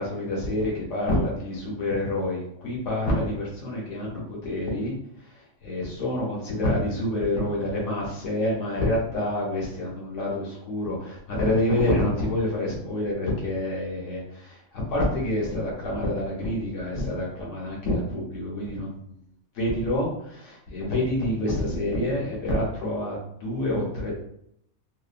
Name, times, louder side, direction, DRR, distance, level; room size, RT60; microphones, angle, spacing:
voice 1, 0.0-5.0 5.2-5.3 5.6-18.9 19.5-24.1, left 1 dB, 65° left, -4 dB, 1.1 m, -27 dB
2.9 x 2.2 x 2.4 m, 0.72 s
omnidirectional pair, 1.4 m